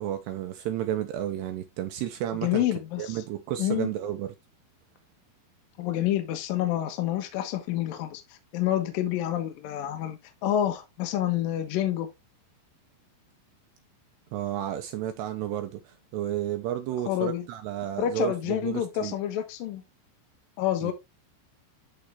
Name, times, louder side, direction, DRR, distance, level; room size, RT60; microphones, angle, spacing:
voice 1, 0.0-2.6 3.0-4.3 14.3-19.1 20.8-20.9, right 11 dB, 80° right, 2.5 m, -32 dB
voice 2, 2.4-3.2 3.6-3.9 5.8-8.2 8.5-12.1 17.1-17.4 18.0-19.8 20.6-20.9, left 12 dB, 70° left, 2.3 m, -28 dB
11.0 x 3.8 x 3.3 m
omnidirectional pair, 5.4 m